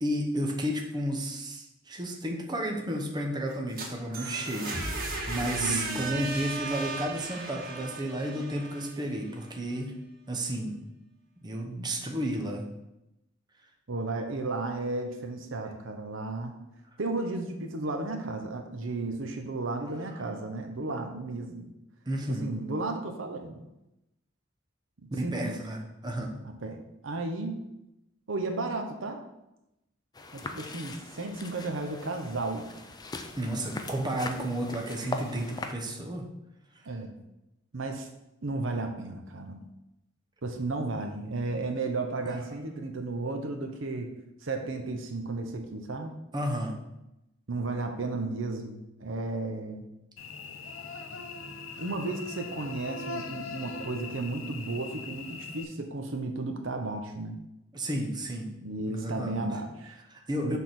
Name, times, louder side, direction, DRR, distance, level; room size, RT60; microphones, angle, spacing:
voice 1, 0.0-9.9 10.3-10.8 11.4-12.6 22.1-22.5 25.1-26.3 33.4-36.3 46.3-46.8 57.7-58.5 58.9-59.5 60.1-60.6, right 1 dB, 20° right, 2 dB, 0.8 m, -32 dB
sound 1, 3.5-9.4, right 2 dB, 50° right, 1.5 m, -36 dB
voice 2, 5.6-6.0 13.9-16.5 17.0-21.7 22.3-23.6 25.2-25.6 26.4-27.6 28.3-29.2 30.3-32.7 36.9-37.1 37.7-38.1 38.4-39.6 40.4-44.1 44.4-46.1 47.5-49.9 51.8-57.4 58.6-60.0 60.4-60.6, right 2 dB, 70° right, 5 dB, 0.8 m, -34 dB
sound 2, 30.1-35.7, left 3 dB, 20° left, 0.5 m, -40 dB
Cricket / Buzz, 50.2-55.6, left 4 dB, 80° left, 0.7 m, -41 dB
6.4 x 3.6 x 6.0 m, 0.90 s
head